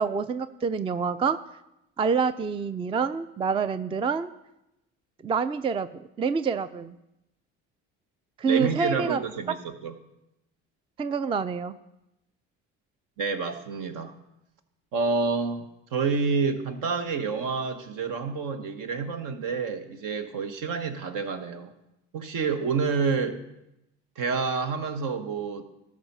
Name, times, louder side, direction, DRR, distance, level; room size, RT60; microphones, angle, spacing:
voice 1, 0.0-1.4 2.0-4.3 5.2-5.9 6.2-6.9 8.4-9.2 11.0-11.7, right 5 dB, 15° right, 13 dB, 0.4 m, -27 dB
voice 2, 8.5-9.9 13.2-14.1 14.9-21.7 22.1-23.4 24.2-25.6, right 5 dB, 65° right, 8 dB, 1.2 m, -28 dB
13.0 x 5.1 x 5.4 m, 0.89 s
supercardioid pair, 75°, 35 cm